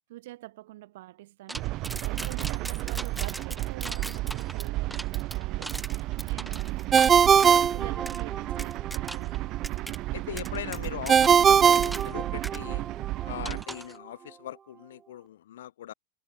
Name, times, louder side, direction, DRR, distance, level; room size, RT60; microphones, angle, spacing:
voice 1, 0.1-1.7 2.0-5.8 6.2-6.9 7.1-9.4, right 17 dB, 55° right, 5.6 m, -46 dB
sound 1, 1.5-7.6 8.1-8.2 8.6-9.4 9.6-10.0 10.4-12.2 12.4-12.6 13.4-14.0, right 1 dB, 5° right, 2.0 m, -39 dB
sound 2, 1.5-13.6, right 18 dB, 40° right, 1.2 m, -33 dB
Ringtone, 6.9-8.6 11.1-12.8, right 7 dB, 20° right, 0.5 m, -20 dB
voice 2, 10.1-12.8 13.2-15.9, left 12 dB, 60° left, 5.6 m, -40 dB
figure-of-eight pair, 90°, 0 cm